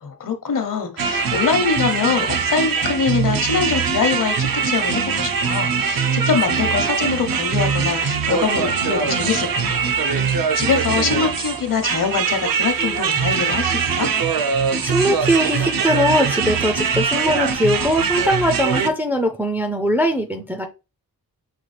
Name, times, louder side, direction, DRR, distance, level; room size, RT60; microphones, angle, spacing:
voice 1, 0.0-4.3 4.7-10.0 10.2-14.1, left 6 dB, 60° left, 0.9 m, -23 dB
sound 1, 1.0-18.9, right 6 dB, 70° right, 0.6 m, -22 dB
voice 2, 14.8-20.7, equal, 5° right, 0.4 m, -20 dB
5.8 x 2.3 x 3.2 m
wide cardioid pair, 165°, 36 cm